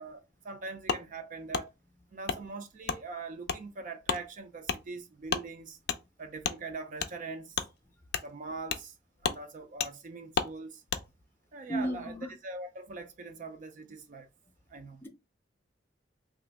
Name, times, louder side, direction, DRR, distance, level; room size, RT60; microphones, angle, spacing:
voice 1, 0.0-1.7 2.1-5.8 6.2-7.6 8.2-8.9 9.2-10.8 11.5-12.2 12.4-14.3 14.7-15.0, right 3 dB, 45° right, 0.4 m, -42 dB
Wood, 0.9-1.0 1.5-1.7 2.3-2.4 2.9-3.0 3.5-3.6 4.0-4.2 4.6-4.8 5.3-5.5 5.9-6.0 6.4-6.6 7.0-7.1 7.5-7.7 8.1-8.3 8.7-8.9 9.2-9.4 9.8-9.9 10.3-10.5 10.9-11.0, left 6 dB, 55° left, 0.4 m, -31 dB
voice 2, 11.7-12.3 15.0-15.1, right 1 dB, 10° left, 0.6 m, -33 dB
2.9 x 2.5 x 3.4 m
head